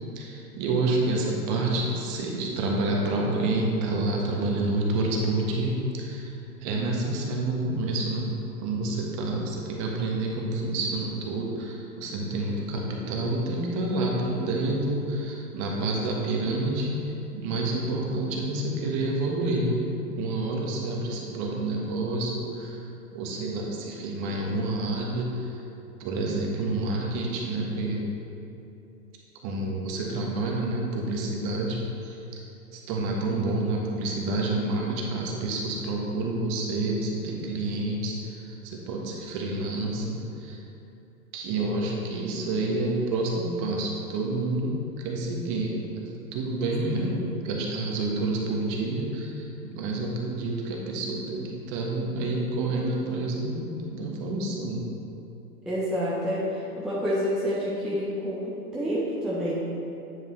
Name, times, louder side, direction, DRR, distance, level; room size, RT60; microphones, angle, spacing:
voice 1, 0.1-6.2 6.6-17.0 17.3-19.8 20.1-22.8 23.1-25.6 26.0-28.1 29.4-32.2 32.7-40.6 41.3-47.1 47.4-54.9, right 2 dB, 35° right, -1 dB, 1.3 m, -28 dB
voice 2, 47.0-47.3 55.7-59.6, equal, ahead, -8 dB, 0.6 m, -29 dB
9.3 x 5.2 x 3.2 m, 2.8 s
hypercardioid pair, 120°, 48 cm